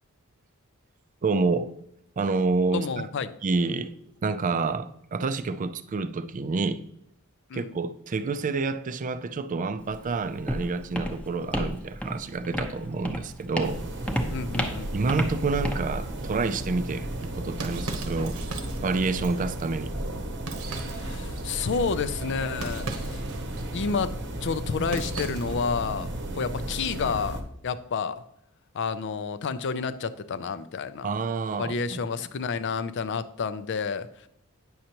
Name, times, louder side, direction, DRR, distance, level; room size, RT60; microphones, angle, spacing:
voice 1, 1.2-1.7 2.2-3.1 3.4-6.8 7.5-13.8 14.9-18.4 18.8-19.9 31.0-32.0, right 4 dB, 35° right, 0.4 m, -28 dB
voice 2, 2.7-3.3 7.5-7.8 14.3-14.9 20.9-23.2 23.7-28.2 28.7-31.1 31.6-34.3, left 5 dB, 55° left, 0.5 m, -30 dB
Walk footsteps, 9.8-17.8, equal, 5° left, 0.8 m, -33 dB
sound 1, 13.6-27.4, right 1 dB, 55° right, 0.8 m, -34 dB
sound 2, 17.1-25.8, right 3 dB, 85° right, 1.0 m, -40 dB
9.3 x 6.4 x 2.9 m
head